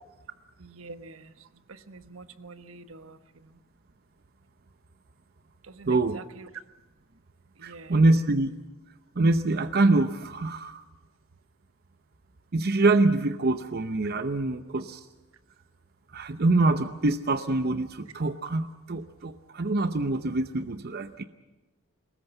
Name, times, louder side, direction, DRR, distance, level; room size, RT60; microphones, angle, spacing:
voice 1, 0.6-1.3 1.7-3.6 5.7-6.2 7.6-7.9, right 3 dB, 75° right, 11 dB, 1.2 m, -46 dB
voice 2, 5.9-6.2 7.6-8.5 9.2-10.8 12.5-15.1 16.1-21.2, right 2 dB, 50° right, 10 dB, 0.8 m, -25 dB
23.0 x 20.0 x 8.0 m, 1.1 s
head